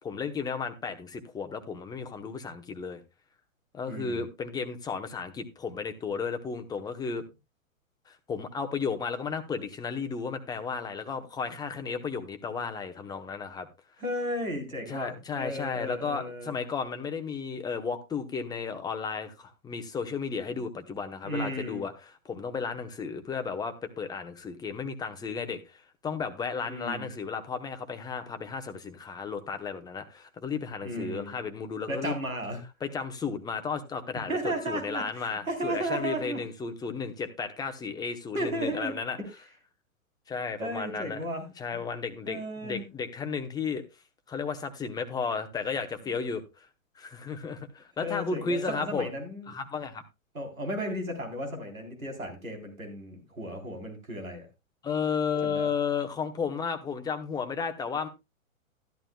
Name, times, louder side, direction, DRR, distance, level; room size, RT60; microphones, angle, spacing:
voice 1, 0.0-3.0 3.7-7.2 8.1-13.7 14.9-32.1 32.8-39.2 40.3-41.2 41.6-43.8 44.3-46.7 47.0-49.1 49.5-50.0 54.8-58.1, left 5 dB, 10° left, 1.0 m, -33 dB
voice 2, 3.9-4.2 14.0-16.6 21.2-21.9 26.7-27.1 30.8-31.4 31.9-32.6 34.3-36.4 38.3-38.9 40.6-41.8 42.3-42.9 48.0-49.5 50.3-54.5 55.4-55.7, right 1 dB, 80° right, 3.7 m, -34 dB
13.0 x 11.5 x 2.3 m
figure-of-eight pair, 110°, 41 cm